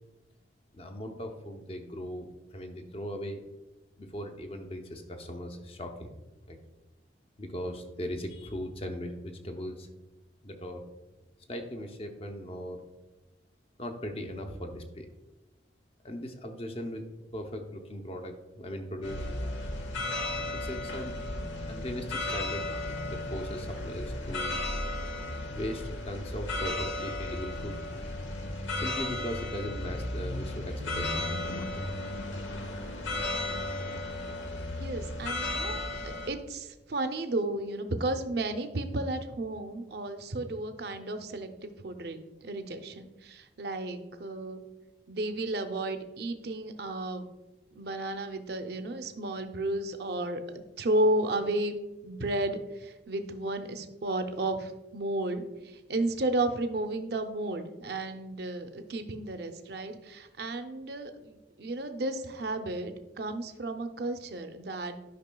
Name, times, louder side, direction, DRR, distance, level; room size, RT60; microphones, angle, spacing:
voice 1, 0.7-3.4 4.0-6.1 6.5-6.6 7.4-9.9 10.4-10.8 11.5-12.8 13.8-15.1 16.0-17.0 17.3-19.3 20.5-21.1 21.7-22.6 23.0-24.6 25.5-27.8 28.7-31.8, equal, 30° left, 4 dB, 0.6 m, -38 dB
sound 1, 19.0-36.3, left 2 dB, 80° left, 1.0 m, -34 dB
voice 2, 34.8-44.6 45.1-47.2 47.7-50.4 50.8-51.7 52.0-65.0, right 2 dB, 55° right, 7 dB, 0.5 m, -33 dB
10.5 x 5.4 x 2.2 m, 1.1 s
head